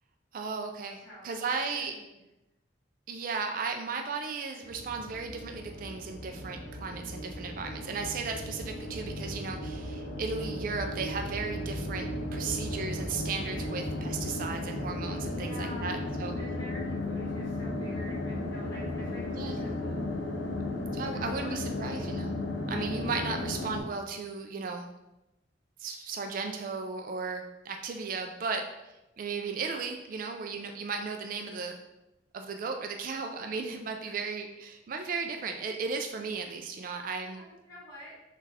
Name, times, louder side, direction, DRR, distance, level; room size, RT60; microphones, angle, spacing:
voice 1, 0.3-1.9 3.1-16.3 19.3-19.6 20.9-22.4 22.7-24.9 25.8-28.6 29.2-31.8 32.3-37.4, right 4 dB, 50° right, 4 dB, 0.3 m, -35 dB
voice 2, 1.0-2.2 8.3-8.4 15.2-16.0 16.4-19.2 19.6-20.0 21.0-21.5 21.8-22.0 34.0-34.2 37.2-38.1, left 1 dB, 15° left, -10 dB, 1.1 m, -48 dB
sound 1, 4.6-23.8, left 1 dB, 80° left, 0.5 m, -35 dB
3.8 x 2.4 x 4.1 m, 0.94 s
head